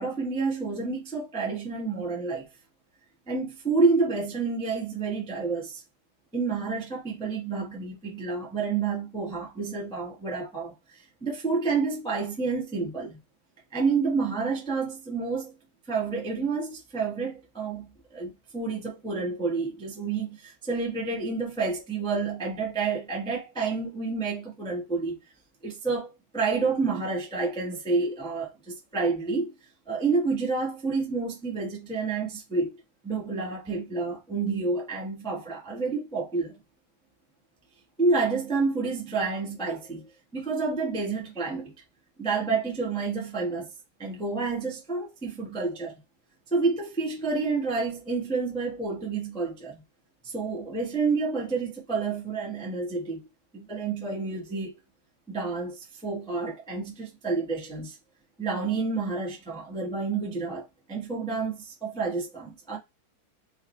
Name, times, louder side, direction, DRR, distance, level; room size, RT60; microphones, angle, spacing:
voice 1, 0.0-2.4 3.3-5.8 6.3-13.2 13.7-15.5 15.9-25.2 25.6-26.1 26.3-29.5 29.9-36.5 38.0-40.0 40.3-41.7 42.2-43.7 44.0-46.0 46.5-49.8 50.2-53.2 53.5-54.8 55.3-58.0 58.4-62.8, right 4 dB, 5° left, 0.8 m, -29 dB
4.9 x 2.5 x 3.1 m
omnidirectional pair, 2.4 m